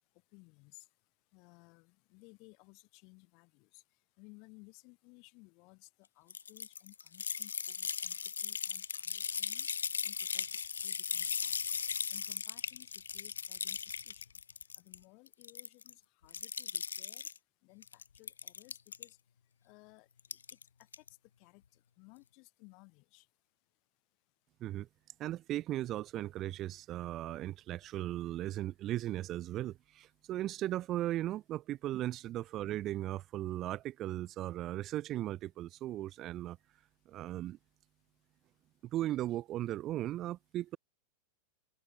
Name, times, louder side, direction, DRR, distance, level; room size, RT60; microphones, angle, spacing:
voice 1, 0.3-0.9 1.3-3.8 4.2-9.7 10.0-10.5 10.8-11.7 12.1-14.3 14.8-17.2 17.6-19.2 19.6-20.6 21.4-21.6 22.0-23.3, left 30 dB, 45° left, 3.1 m, -60 dB
sound 1, 6.3-15.0 15.3-15.9 16.3-17.4 17.8-19.0 20.2-20.6 20.9-21.1, left 6 dB, 70° left, 0.5 m, -38 dB
voice 2, 25.2-36.6 37.1-37.6 38.9-40.8, right 14 dB, 35° right, 0.7 m, -37 dB
open air
figure-of-eight pair, 90°, 0 cm